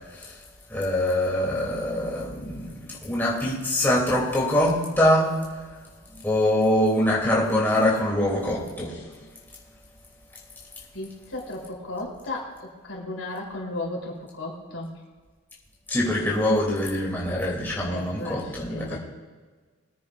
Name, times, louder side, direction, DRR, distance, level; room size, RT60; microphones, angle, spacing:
voice 1, 0.7-5.3 6.2-9.0 15.9-19.0, left 1 dB, 10° left, -5 dB, 3.0 m, -24 dB
voice 2, 10.9-14.9 17.8-19.0, left 2 dB, 80° left, -2 dB, 3.8 m, -35 dB
22.5 x 9.8 x 2.6 m, 1.5 s
head